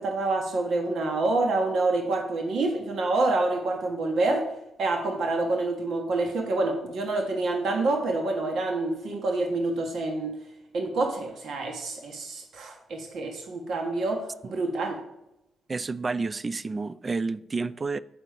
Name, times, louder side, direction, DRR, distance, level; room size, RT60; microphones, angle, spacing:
voice 1, 0.0-4.5 4.8-10.3 10.7-15.0, right 2 dB, 70° right, 1.4 m, -27 dB
voice 2, 15.7-18.0, right 4 dB, 35° right, 0.3 m, -30 dB
7.1 x 4.5 x 5.1 m
supercardioid pair, 55°, 0 cm